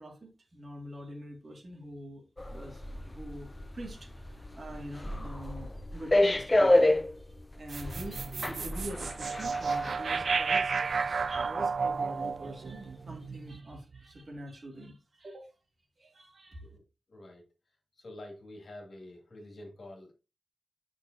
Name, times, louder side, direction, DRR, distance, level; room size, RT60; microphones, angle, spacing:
voice 1, 0.0-2.2 2.5-7.3 7.6-15.6 16.0-16.7, right 1 dB, 35° right, 2.2 m, -45 dB
sound 1, 2.4-11.4 11.8-12.0, left 1 dB, 15° left, 0.4 m, -30 dB
sound 2, 7.7-14.0, right 5 dB, 60° right, 0.3 m, -32 dB
voice 2, 17.1-17.5 17.9-20.1, left 1 dB, 50° left, 2.7 m, -47 dB
9.3 x 6.0 x 2.8 m
wide cardioid pair, 175°, 0 cm